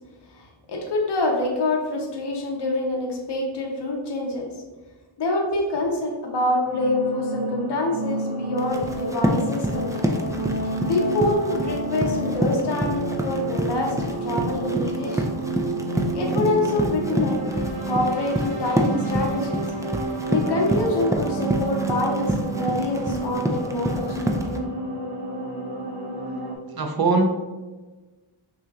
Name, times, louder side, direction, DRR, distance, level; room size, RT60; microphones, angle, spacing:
voice 1, 0.3-4.6 5.2-10.3 10.9-15.2 16.1-17.4 17.9-19.6 20.3-24.2, left 2 dB, 55° left, 0 dB, 0.8 m, -26 dB
sound 1, 6.6-26.6, right 2 dB, 80° right, 1.0 m, -30 dB
Run, 8.6-24.6, equal, 10° right, 0.3 m, -28 dB
voice 2, 26.7-27.3, right 3 dB, 50° right, 3 dB, 0.6 m, -22 dB
5.8 x 2.8 x 2.4 m, 1.3 s
wide cardioid pair, 70°, 49 cm